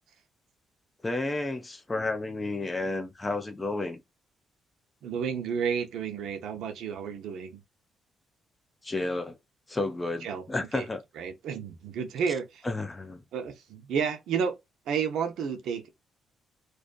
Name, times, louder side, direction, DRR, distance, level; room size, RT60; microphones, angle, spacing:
voice 1, 1.0-4.0 8.8-9.4 9.7-11.0 12.6-13.2, left 2 dB, 15° left, 0.4 m, -31 dB
voice 2, 5.0-7.6 10.2-10.4 10.7-10.8 11.2-12.7 13.3-14.6 14.9-15.9, right 6 dB, 70° right, 0.6 m, -31 dB
2.5 x 2.5 x 2.2 m
cardioid pair, 170°, 0 cm